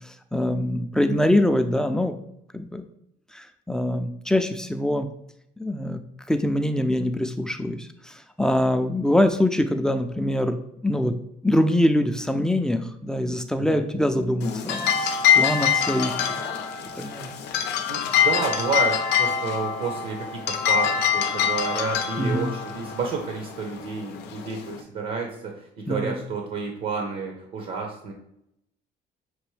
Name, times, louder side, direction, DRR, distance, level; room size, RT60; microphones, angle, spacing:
voice 1, 0.3-2.2 2.5-2.9 3.3-5.1 5.6-6.0 6.3-8.1 8.4-10.6 10.8-11.1 11.4-16.4 17.0-17.3 22.2-22.5 25.9-26.2, left 1 dB, 5° left, 7 dB, 0.4 m, -24 dB
sound 1, 14.4-24.8, left 8 dB, 85° left, 0.5 m, -25 dB
voice 2, 17.9-28.1, right 4 dB, 60° right, 1 dB, 0.9 m, -30 dB
6.0 x 2.6 x 3.2 m, 0.77 s
cardioid pair, 110°, 17 cm